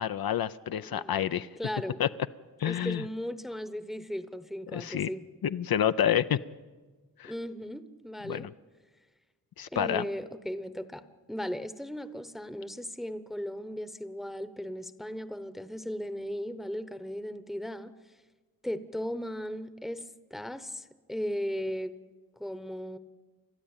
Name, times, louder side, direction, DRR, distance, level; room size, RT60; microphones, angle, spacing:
voice 1, 0.0-1.5 2.0-2.1 2.6-3.0 4.7-5.1 5.4-6.4 7.2-7.3 8.2-8.5 9.6-10.0, left 10 dB, 75° left, 12 dB, 0.6 m, -28 dB
voice 2, 0.9-1.3 1.6-2.0 2.6-5.2 7.2-8.5 9.7-11.0 11.3-17.9 18.6-20.0 20.3-21.9 22.4-23.0, equal, ahead, 11 dB, 0.8 m, -37 dB
29.5 x 13.0 x 8.8 m, 1.3 s
wide cardioid pair, 120°, 36 cm